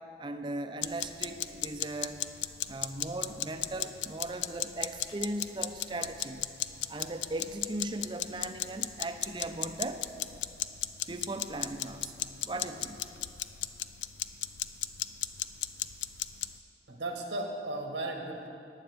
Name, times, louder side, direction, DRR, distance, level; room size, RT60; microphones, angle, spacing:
voice 1, 0.2-2.2 2.7-6.4 6.9-10.0 11.1-12.1 12.5-13.0, right 2 dB, 25° right, 8 dB, 0.5 m, -38 dB
sound 1, 0.8-16.6, left 12 dB, 85° left, 0.4 m, -36 dB
voice 2, 16.9-18.5, right 2 dB, 85° right, 2 dB, 1.2 m, -35 dB
14.5 x 9.8 x 3.4 m, 2.7 s
head